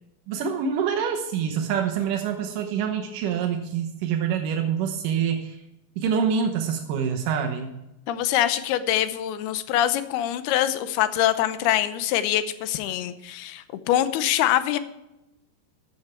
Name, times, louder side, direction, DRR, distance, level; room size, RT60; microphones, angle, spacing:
voice 1, 0.3-5.6 6.0-7.8, right 7 dB, 75° right, 3 dB, 2.0 m, -26 dB
voice 2, 8.1-14.8, left 12 dB, 80° left, 12 dB, 2.6 m, -24 dB
14.0 x 8.9 x 4.4 m, 0.93 s
omnidirectional pair, 4.9 m